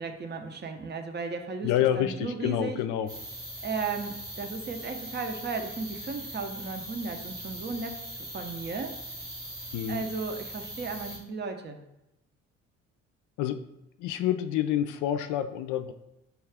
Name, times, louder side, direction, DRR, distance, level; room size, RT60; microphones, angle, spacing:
voice 1, 0.0-1.7 1.9-2.8 3.6-9.0 9.9-11.8, right 4 dB, 30° right, 5 dB, 0.6 m, -35 dB
voice 2, 1.6-3.1 9.7-10.0 13.4-13.6 14.0-15.9, left 11 dB, 60° left, 10 dB, 0.5 m, -28 dB
sound 1, 3.1-11.2, right 1 dB, 90° right, 1.3 m, -41 dB
5.6 x 2.3 x 3.4 m, 0.89 s
hypercardioid pair, 50°, 34 cm